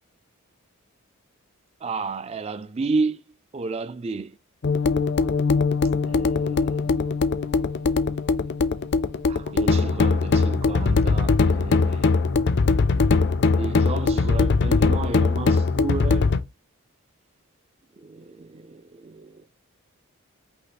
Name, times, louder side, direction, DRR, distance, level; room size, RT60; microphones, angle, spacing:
voice 1, 1.8-3.2 3.5-4.3 6.0-6.9 9.3-12.1 13.6-16.3 18.0-19.3, right 4 dB, 30° right, 0.4 m, -31 dB
sound 1, 4.6-16.4, left 4 dB, 50° left, 0.5 m, -21 dB
5.4 x 2.1 x 4.1 m
head